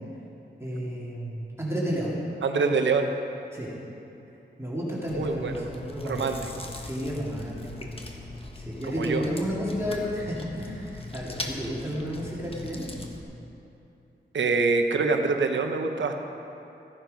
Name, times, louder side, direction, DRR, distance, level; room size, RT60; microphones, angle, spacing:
voice 1, 0.6-2.2 3.5-3.7 4.6-6.4 6.8-7.9 8.5-12.9, equal, 15° right, -6 dB, 2.3 m, -32 dB
voice 2, 2.4-3.1 5.2-5.6 6.0-6.7 8.9-9.2 14.3-16.2, right 4 dB, 90° right, 5 dB, 0.9 m, -25 dB
Chewing mastication, 5.1-13.2, left 2 dB, 30° left, 1.1 m, -40 dB
14.0 x 9.2 x 5.3 m, 2.8 s
wide cardioid pair, 110°, 19 cm